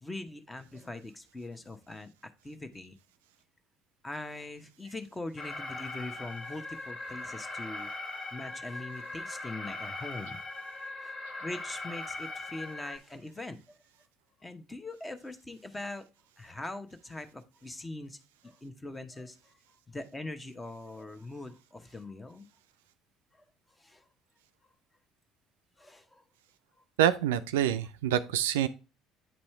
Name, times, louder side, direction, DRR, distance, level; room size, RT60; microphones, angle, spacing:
voice 1, 0.0-3.0 4.0-8.0 8.3-10.4 11.0-11.1 11.4-13.8 14.4-16.0 16.4-18.2 18.4-19.6 19.9-22.5 23.7-24.1 25.8-26.2, left 2 dB, 15° left, 9 dB, 0.9 m, -42 dB
Alarm, 5.4-13.0, left 2 dB, 40° left, 1.6 m, -40 dB
voice 2, 27.0-28.7, right 11 dB, 75° right, 11 dB, 0.4 m, -26 dB
9.0 x 4.2 x 3.2 m, 0.31 s
hypercardioid pair, 60°, 0 cm